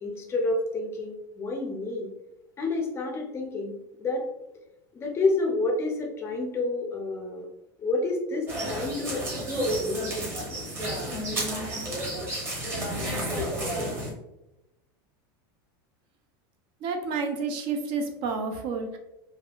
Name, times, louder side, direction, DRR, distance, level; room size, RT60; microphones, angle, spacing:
voice 1, 0.0-2.1 2.6-4.2 4.9-7.5 7.8-10.1, left 2 dB, 20° left, 2 dB, 0.5 m, -29 dB
sound 1, 8.5-14.1, right 1 dB, 20° right, 0.9 m, -31 dB
voice 2, 16.8-19.0, right 4 dB, 45° right, 5 dB, 0.4 m, -30 dB
3.4 x 2.2 x 2.3 m, 0.93 s
supercardioid pair, 145°, 12 cm